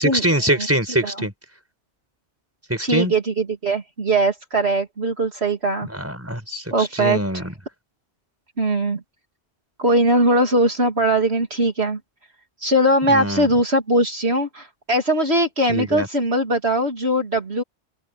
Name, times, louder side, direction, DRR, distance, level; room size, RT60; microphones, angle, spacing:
voice 1, 0.0-1.3 2.7-3.1 5.8-7.5 13.1-13.5 15.7-16.1, right 1 dB, 10° right, 5.4 m, -23 dB
voice 2, 2.8-5.9 6.7-7.4 8.6-9.0 9.8-12.0 12.6-17.6, right 1 dB, 60° right, 3.2 m, -20 dB
open air
omnidirectional pair, 1.2 m